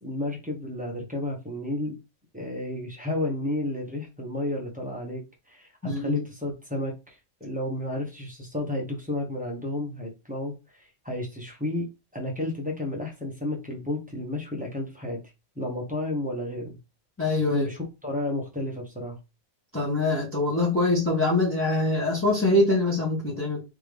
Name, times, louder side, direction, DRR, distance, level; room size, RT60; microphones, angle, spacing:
voice 1, 0.0-1.9 2.3-11.9 12.1-15.2 15.5-16.8 17.5-19.2, left 1 dB, 5° right, 1.2 m, -32 dB
voice 2, 5.8-6.2 17.2-17.7 19.7-23.6, left 2 dB, 10° left, 1.6 m, -24 dB
3.6 x 3.4 x 3.2 m
omnidirectional pair, 1.2 m